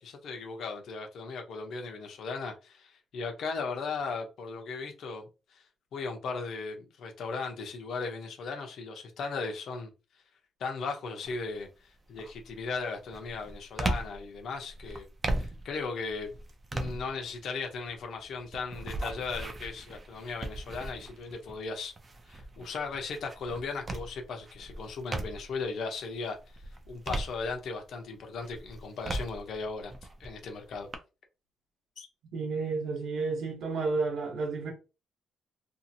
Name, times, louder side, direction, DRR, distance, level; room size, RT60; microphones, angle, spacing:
voice 1, 0.0-5.6 5.9-9.9 10.6-15.1 15.3-16.3 16.7-21.9 22.3-26.4 26.9-29.9 30.2-30.9 32.0-32.1, left 4 dB, 50° left, 0.7 m, -37 dB
sound 1, 11.2-11.6 12.1-25.7 26.1-27.9 28.4-31.0, right 2 dB, 20° right, 0.4 m, -38 dB
voice 2, 32.3-34.7, right 4 dB, 55° right, 0.9 m, -31 dB
2.7 x 2.5 x 2.6 m
cardioid pair, 180°, 0 cm